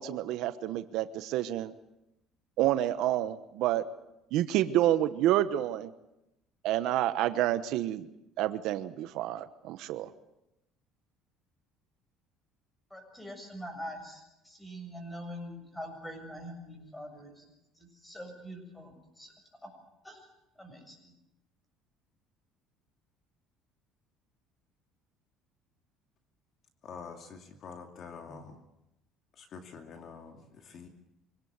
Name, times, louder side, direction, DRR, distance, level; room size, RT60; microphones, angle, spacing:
voice 1, 0.0-1.7 2.6-3.8 4.3-5.9 6.6-8.1 8.4-10.1, right 13 dB, 70° right, 11 dB, 1.1 m, -29 dB
voice 2, 12.9-17.4 17.8-19.3 19.6-19.7 20.0-20.3 20.6-21.1, equal, 5° left, 5 dB, 6.9 m, -44 dB
voice 3, 26.8-28.6 29.4-30.9, left 5 dB, 45° left, 5 dB, 2.5 m, -46 dB
24.5 x 18.0 x 8.3 m, 0.88 s
cardioid pair, 130°, 0 cm